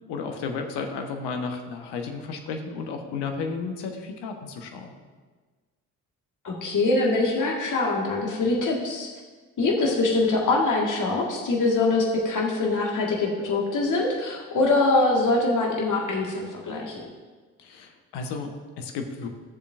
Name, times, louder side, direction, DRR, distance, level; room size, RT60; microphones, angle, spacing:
voice 1, 0.1-4.9 17.6-19.3, left 4 dB, 60° left, 4 dB, 1.3 m, -33 dB
voice 2, 6.4-9.1 9.6-17.0, left 2 dB, 40° left, -1 dB, 1.8 m, -23 dB
15.5 x 7.0 x 2.6 m, 1.4 s
figure-of-eight pair, 45°, 45 cm